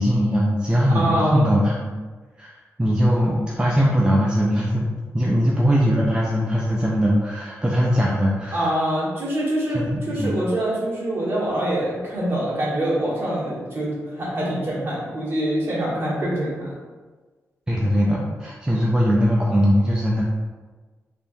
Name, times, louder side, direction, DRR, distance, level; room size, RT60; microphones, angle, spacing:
voice 1, 0.0-1.9 2.4-4.8 5.1-8.7 9.7-10.3 17.7-20.2, equal, 15° right, -4 dB, 0.4 m, -20 dB
voice 2, 0.9-1.5 8.5-16.7, right 1 dB, 45° right, -7 dB, 1.4 m, -25 dB
3.4 x 2.8 x 2.6 m, 1.4 s
wide cardioid pair, 110°, 6 cm